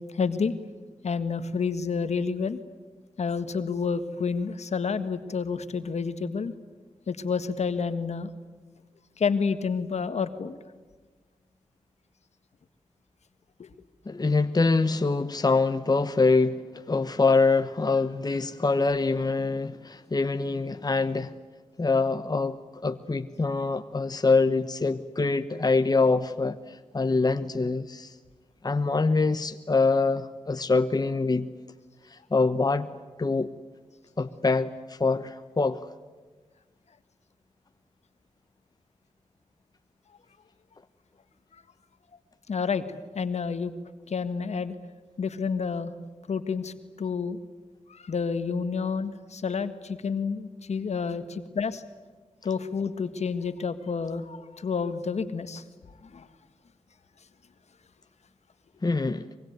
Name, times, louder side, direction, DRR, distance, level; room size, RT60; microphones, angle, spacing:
voice 1, 0.1-0.5 1.0-2.6 3.2-6.5 7.1-8.3 9.2-10.6 13.6-13.7 42.5-42.8 43.1-43.7 44.1-44.7 45.2-45.9 46.3-47.4 47.9-51.8 52.4-55.6 56.1-56.3, left 5 dB, 70° left, 1.7 m, -29 dB
voice 2, 14.1-21.3 21.8-22.6 22.8-28.1 28.6-31.5 32.1-32.9 33.2-33.5 34.2-35.8 58.8-59.3, left 3 dB, 35° left, 1.1 m, -24 dB
24.0 x 23.0 x 9.4 m
cardioid pair, 45°, 12 cm